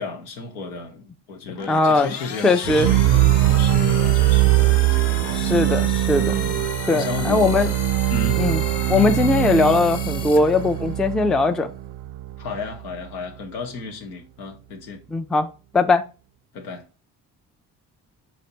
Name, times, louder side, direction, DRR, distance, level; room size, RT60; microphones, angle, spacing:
voice 1, 0.0-3.1 3.5-6.0 6.3-7.7 8.1-8.5 12.4-15.0 16.5-16.9, left 3 dB, 85° left, 0.9 m, -34 dB
sound 1, 1.4-11.1, left 9 dB, 60° left, 0.7 m, -35 dB
voice 2, 1.7-2.1 2.4-2.9 5.3-6.3 6.9-7.7 8.4-8.6 8.9-11.7 15.1-15.5 15.7-16.0, left 3 dB, ahead, 0.3 m, -19 dB
sound 2, 2.6-12.7, right 14 dB, 60° right, 0.5 m, -21 dB
4.1 x 3.2 x 2.9 m
hypercardioid pair, 45°, 47 cm